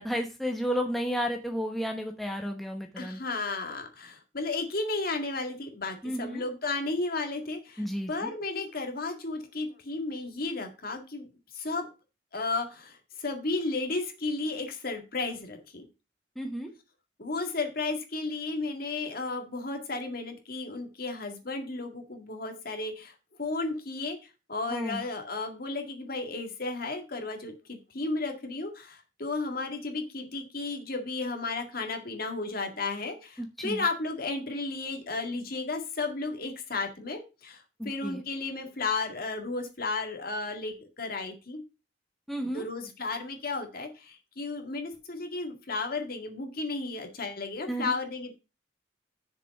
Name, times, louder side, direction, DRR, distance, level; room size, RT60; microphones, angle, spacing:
voice 1, 0.0-3.2 6.0-6.4 7.8-8.3 16.4-16.7 24.7-25.0 33.4-33.8 37.8-38.2 42.3-42.6 47.7-47.9, equal, ahead, 2 dB, 1.0 m, -32 dB
voice 2, 3.0-11.3 11.5-11.9 12.3-15.9 17.2-24.2 24.5-41.6 42.5-48.3, left 3 dB, 50° left, 4 dB, 1.9 m, -33 dB
6.9 x 5.0 x 6.6 m, 0.29 s
head